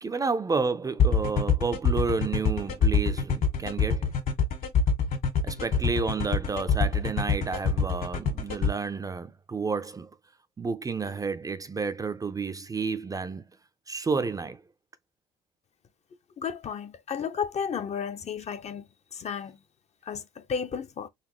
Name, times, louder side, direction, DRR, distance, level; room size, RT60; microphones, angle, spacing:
voice 1, 0.0-4.1 5.4-10.1 10.6-13.4 13.9-14.6, right 4 dB, 20° right, 0.4 m, -30 dB
sound 1, 1.0-8.7, left 6 dB, 55° left, 1.9 m, -24 dB
voice 2, 16.4-18.8 19.1-19.6 20.1-21.1, left 7 dB, 40° left, 0.7 m, -33 dB
4.1 x 3.5 x 3.0 m
cardioid pair, 110°, 17 cm